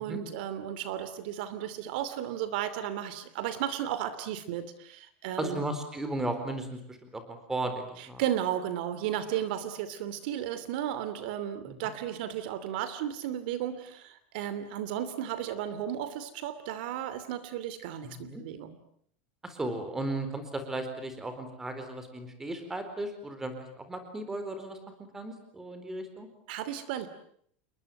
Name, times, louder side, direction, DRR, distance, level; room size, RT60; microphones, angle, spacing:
voice 1, 0.0-5.6 8.0-18.8 26.5-27.1, right 11 dB, 60° right, 13 dB, 2.8 m, -34 dB
voice 2, 5.4-8.2 11.7-11.9 18.0-18.4 19.4-24.8 25.1-26.3, right 2 dB, 10° right, 8 dB, 4.2 m, -35 dB
29.5 x 22.0 x 9.1 m, 0.66 s
supercardioid pair, 175°, 6 cm